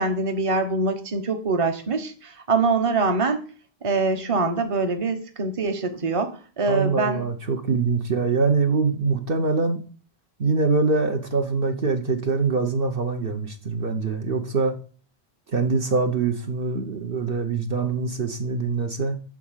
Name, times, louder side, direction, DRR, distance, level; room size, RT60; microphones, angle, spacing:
voice 1, 0.0-3.4 3.8-7.3 7.6-7.8, right 3 dB, 30° right, 6 dB, 1.1 m, -24 dB
voice 2, 6.7-9.8 10.4-14.8 15.5-19.2, right 4 dB, 60° right, 4 dB, 1.1 m, -24 dB
11.0 x 3.7 x 7.3 m, 0.41 s
omnidirectional pair, 1.1 m